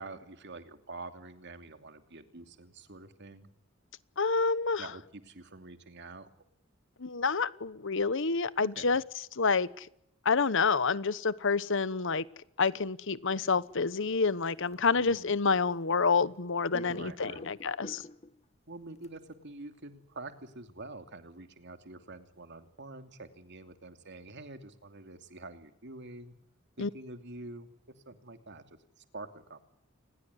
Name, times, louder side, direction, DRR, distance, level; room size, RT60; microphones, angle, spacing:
voice 1, 0.0-3.5 4.8-6.3 8.6-9.0 15.0-15.3 16.9-17.5 17.9-18.0 18.7-26.3 26.8-27.7 28.1-29.6, right 2 dB, 55° right, 8 dB, 2.8 m, -47 dB
voice 2, 4.2-4.9 7.0-9.0 9.4-9.9 10.2-12.2 12.6-18.0 26.8-26.9, left 4 dB, 65° left, 18 dB, 1.1 m, -28 dB
sound 1, 13.4-16.4 16.7-18.4 19.0-19.2, left 2 dB, 30° left, 1.6 m, -50 dB
28.5 x 21.0 x 9.7 m, 0.77 s
head